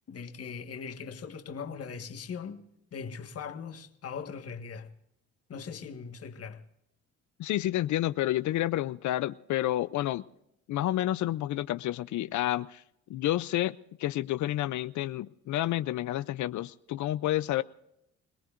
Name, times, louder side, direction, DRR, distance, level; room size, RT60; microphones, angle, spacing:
voice 1, 0.1-2.6 2.9-4.9 5.5-6.6, left 6 dB, 50° left, 1.6 m, -40 dB
voice 2, 7.4-10.2 10.7-12.8 13.1-17.6, left 14 dB, 75° left, 0.5 m, -30 dB
26.5 x 18.5 x 2.5 m
cardioid pair, 90°, 30 cm